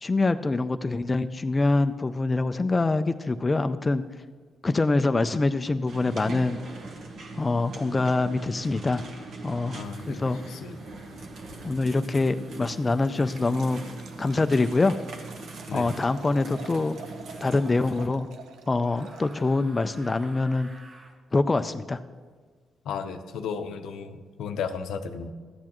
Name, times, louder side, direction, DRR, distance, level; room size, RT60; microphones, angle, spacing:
voice 1, 0.0-4.0 4.6-6.6 7.4-9.0 9.4-9.8 10.1-10.4 11.6-13.8 14.2-15.0 15.7-17.0 17.4-18.3 18.7-20.7 21.3-22.0, left 3 dB, 20° left, 9 dB, 0.3 m, -25 dB
sound 1, 5.9-18.1, right 3 dB, 60° right, 1.2 m, -41 dB
voice 2, 9.7-10.2 10.5-10.8 15.7-15.9 22.9-25.3, left 6 dB, 85° left, 8 dB, 0.6 m, -34 dB
Liquid, 12.9-19.7, right 5 dB, 80° right, 0.6 m, -48 dB
sound 2, 13.5-14.0 15.4-16.1 17.3-18.0 18.8-21.2, right 2 dB, 35° right, 1.1 m, -52 dB
13.0 x 8.5 x 3.0 m, 1.6 s
cardioid pair, 110°, 0 cm